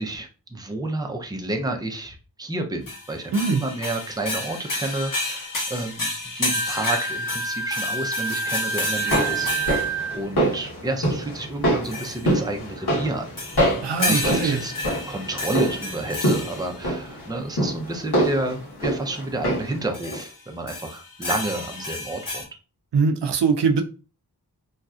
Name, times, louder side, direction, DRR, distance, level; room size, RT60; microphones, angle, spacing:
voice 1, 0.0-13.3 13.6-14.7 15.1-22.5, right 2 dB, 10° right, 0.5 m, -30 dB
sound 1, 2.9-10.0 11.8-12.4 13.4-16.9 19.9-20.3 20.7-22.4, left 2 dB, 55° left, 1.0 m, -31 dB
voice 2, 3.3-3.6 13.8-14.6 22.9-23.8, right 5 dB, 85° right, 0.5 m, -22 dB
Wind instrument woodwind instrument, 6.5-10.2, right 4 dB, 90° left, 1.0 m, -28 dB
sound 2, 8.8-19.8 20.1-20.2, right 1 dB, 70° left, 1.5 m, -26 dB
3.2 x 2.7 x 2.3 m
wide cardioid pair, 85°, 40 cm